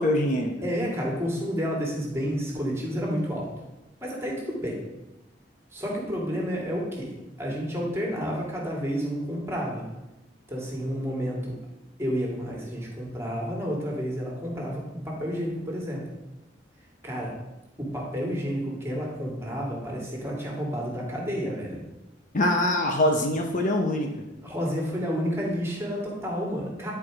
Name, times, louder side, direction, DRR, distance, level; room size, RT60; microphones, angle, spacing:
voice 1, 0.0-0.6 22.3-24.1, left 1 dB, 45° left, 2 dB, 0.8 m, -23 dB
voice 2, 0.6-3.5 4.0-4.8 5.7-7.1 7.4-9.8 10.5-11.6 12.0-16.0 17.0-17.3 17.8-21.8 24.4-26.9, equal, 15° right, -3 dB, 2.2 m, -30 dB
10.5 x 4.7 x 4.8 m, 1.0 s
head